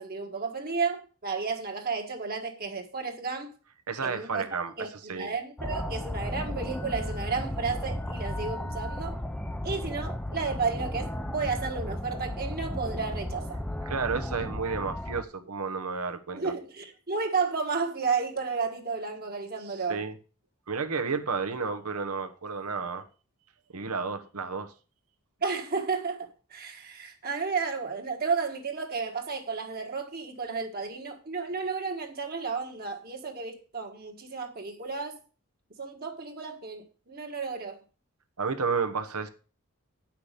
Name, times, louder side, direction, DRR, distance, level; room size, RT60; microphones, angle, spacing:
voice 1, 0.0-3.5 4.0-4.4 4.8-9.2 9.6-13.6 16.3-20.0 25.4-35.2 35.8-37.8, right 5 dB, 45° right, 1.5 m, -32 dB
voice 2, 3.9-5.3 13.8-16.5 19.6-20.2 20.7-23.1 23.7-24.7 38.4-39.3, right 5 dB, 80° right, 1.1 m, -32 dB
sound 1, 5.6-15.2, left 1 dB, 5° left, 0.5 m, -34 dB
8.8 x 5.9 x 6.6 m
head